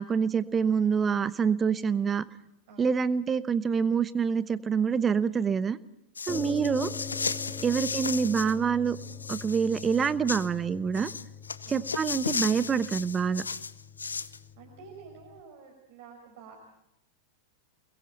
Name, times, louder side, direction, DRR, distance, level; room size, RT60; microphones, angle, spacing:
voice 1, 0.0-2.2 2.8-5.8 6.3-6.9 7.6-9.0 9.3-11.1 11.7-13.4, right 6 dB, 20° right, 15 dB, 1.0 m, -26 dB
sound 1, 6.2-8.6 8.9-10.5 10.9-14.4, left 5 dB, 75° left, 0.7 m, -35 dB
sound 2, 6.3-15.4, left 6 dB, 20° left, 1.4 m, -43 dB
voice 2, 6.3-6.7 7.6-7.8 11.6-12.0 14.3-16.5, right 5 dB, 50° right, 1 dB, 5.5 m, -50 dB
29.0 x 22.0 x 4.4 m, 0.85 s
figure-of-eight pair, 90°, 0 cm